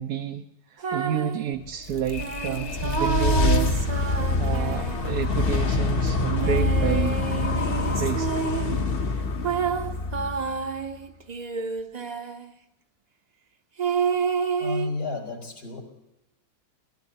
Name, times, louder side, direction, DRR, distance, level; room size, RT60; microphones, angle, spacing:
voice 1, 0.0-3.8 4.4-7.2 7.9-8.3, right 9 dB, 75° right, 6 dB, 1.2 m, -30 dB
sound 1, 0.8-1.4 2.2-5.4 6.3-8.8 9.4-12.5 13.8-14.9, right 6 dB, 35° right, 0.7 m, -29 dB
sound 2, 1.7-10.9, left 3 dB, 45° left, 0.9 m, -25 dB
voice 2, 14.6-15.8, left 3 dB, 90° left, -1 dB, 4.8 m, -31 dB
24.0 x 18.5 x 2.8 m, 0.95 s
omnidirectional pair, 1.7 m